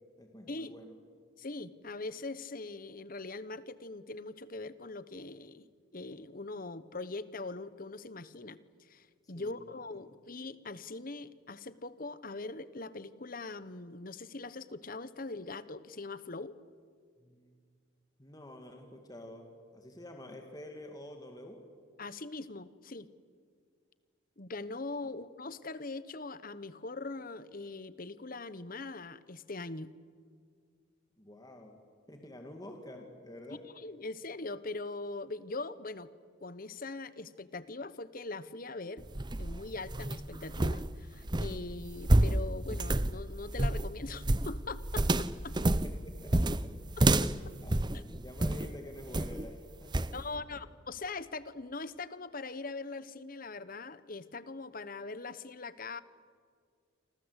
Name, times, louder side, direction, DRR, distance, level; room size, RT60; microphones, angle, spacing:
voice 1, 0.2-0.9 9.3-9.7 17.2-17.5 18.2-21.6 31.2-31.8 32.1-33.6 45.6-46.7 47.6-50.2, left 1 dB, 20° left, 3 dB, 2.3 m, -49 dB
voice 2, 1.4-16.6 22.0-23.1 24.4-29.9 33.7-36.1 36.4-39.1 39.4-45.6 47.0-47.3 50.1-56.0, left 3 dB, 45° left, 15 dB, 1.0 m, -42 dB
sound 1, 39.0-48.7 49.1-49.5 49.9-50.2, right 1 dB, 20° right, 0.7 m, -29 dB
28.5 x 25.5 x 8.2 m, 2.1 s
head